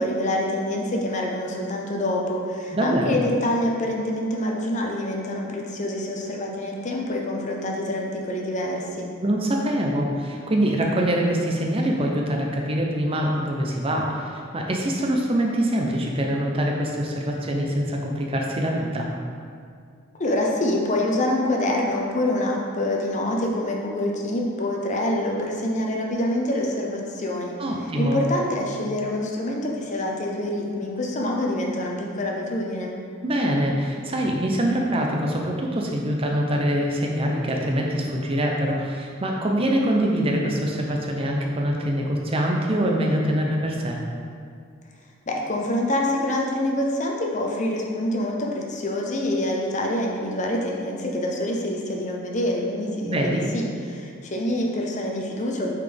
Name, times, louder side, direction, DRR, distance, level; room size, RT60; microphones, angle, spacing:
voice 1, 0.0-9.1 20.1-27.6 28.0-33.0 45.3-55.7, left 1 dB, 35° left, 0 dB, 0.7 m, -26 dB
voice 2, 2.7-3.2 9.2-19.1 27.6-28.2 33.2-44.0 53.0-53.5, right 1 dB, 25° right, 0 dB, 0.6 m, -24 dB
8.5 x 4.1 x 3.4 m, 2.2 s
head